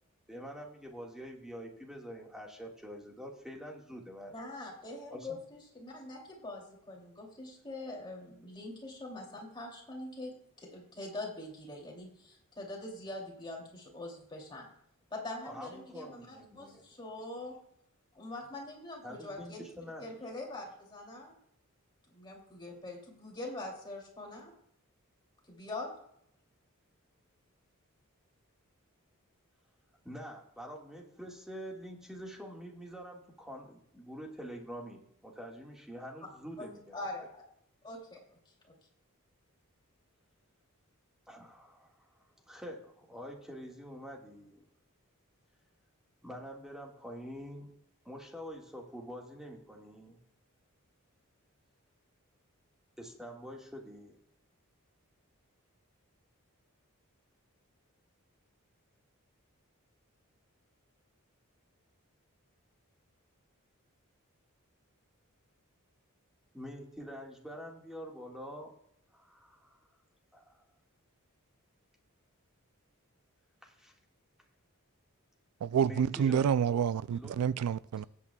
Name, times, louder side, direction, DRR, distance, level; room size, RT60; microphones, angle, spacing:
voice 1, 0.3-4.3 5.1-5.3 15.4-16.8 19.0-20.1 30.0-37.0 41.3-42.1 42.5-44.7 46.2-47.7 48.1-50.2 53.0-54.2 66.5-68.7 69.1-69.8 70.3-70.6 73.6-73.9 75.9-76.6 77.1-77.4, equal, ahead, 1.8 m, -46 dB
voice 2, 4.3-14.7 15.1-17.6 18.1-19.6 20.0-21.3 22.1-24.5 25.5-25.9 36.6-36.7 36.9-37.4 37.8-38.2 38.6-38.7, left 2 dB, 20° left, 2.8 m, -43 dB
voice 3, 75.6-78.1, right 8 dB, 80° right, 0.3 m, -28 dB
18.0 x 8.3 x 2.3 m
head